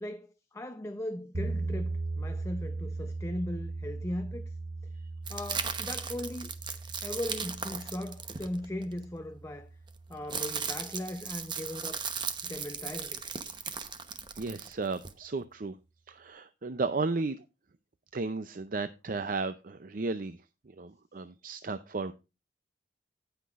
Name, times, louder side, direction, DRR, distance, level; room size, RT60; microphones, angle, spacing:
voice 1, 0.0-4.5 5.3-6.5 7.0-9.7 10.1-12.0 12.4-13.2, left 1 dB, 15° left, 0.7 m, -38 dB
sound 1, 1.3-11.4, right 3 dB, 70° right, 2.2 m, -39 dB
sound 2, 5.2-9.0 9.9-15.1, right 6 dB, 25° right, 0.9 m, -37 dB
voice 2, 14.3-15.8 16.1-17.4 18.1-22.1, right 3 dB, 50° right, 0.5 m, -34 dB
17.5 x 5.9 x 2.5 m
head